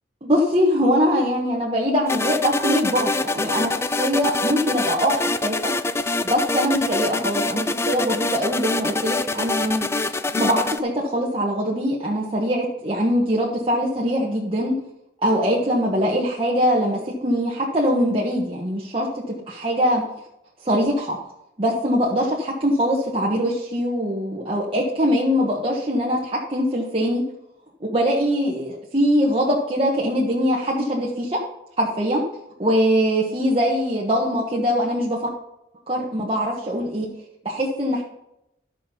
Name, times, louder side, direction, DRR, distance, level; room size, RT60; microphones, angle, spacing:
voice 1, 0.2-5.7 6.2-14.8 15.2-20.0 20.6-21.2 21.6-27.2 27.8-31.4 31.8-32.2 32.6-35.3 35.9-37.1 37.4-38.0, equal, 30° right, -4 dB, 1.4 m, -22 dB
sound 1, 2.1-10.8, left 3 dB, 15° left, 0.3 m, -25 dB
12.5 x 6.3 x 5.6 m, 0.82 s
head